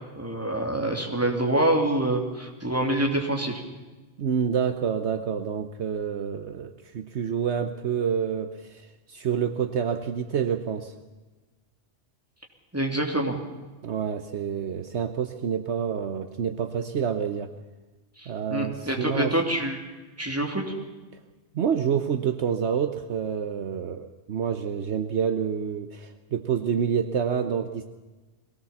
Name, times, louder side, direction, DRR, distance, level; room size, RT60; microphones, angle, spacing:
voice 1, 0.2-3.6 12.7-13.4 18.2-19.8 20.2-20.7, right 1 dB, 10° right, 2 dB, 3.0 m, -26 dB
voice 2, 4.2-10.9 13.8-17.5 18.3-19.3 21.5-27.9, right 7 dB, 65° right, 8 dB, 1.2 m, -28 dB
22.0 x 18.0 x 7.2 m, 1.2 s
omnidirectional pair, 1.2 m